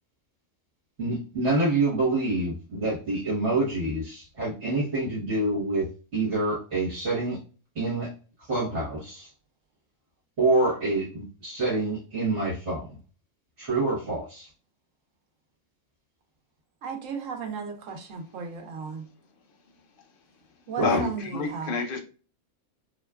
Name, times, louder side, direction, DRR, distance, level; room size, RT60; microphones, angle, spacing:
voice 1, 1.0-7.4 7.7-8.1 8.5-9.3 10.4-12.9 13.6-14.5 20.8-21.0, right 2 dB, 60° right, 1.5 m, -27 dB
voice 2, 16.8-19.1 20.7-21.8, right 5 dB, 80° right, 1.2 m, -35 dB
voice 3, 20.8-22.0, left 5 dB, 50° left, 0.8 m, -28 dB
4.4 x 2.3 x 2.2 m
omnidirectional pair, 1.3 m